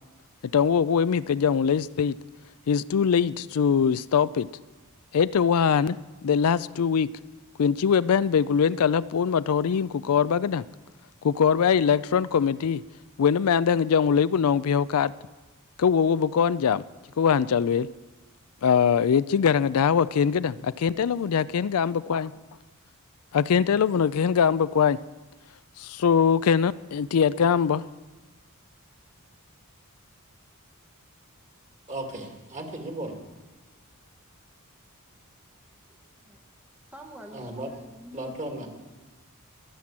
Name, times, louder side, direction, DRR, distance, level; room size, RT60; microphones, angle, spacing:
voice 1, 0.5-2.2 2.7-4.5 5.1-6.0 6.2-7.1 7.6-10.6 11.2-12.8 13.2-15.1 15.8-16.8 17.2-17.9 18.6-22.3 23.3-25.0 25.8-27.9, left 7 dB, 75° left, 16 dB, 0.4 m, -22 dB
voice 2, 31.9-33.1 37.3-37.7 38.1-38.7, right 1 dB, 35° right, 3 dB, 2.4 m, -35 dB
voice 3, 36.9-38.7, equal, 5° right, 1 dB, 0.9 m, -47 dB
22.5 x 7.7 x 7.4 m, 1.2 s
head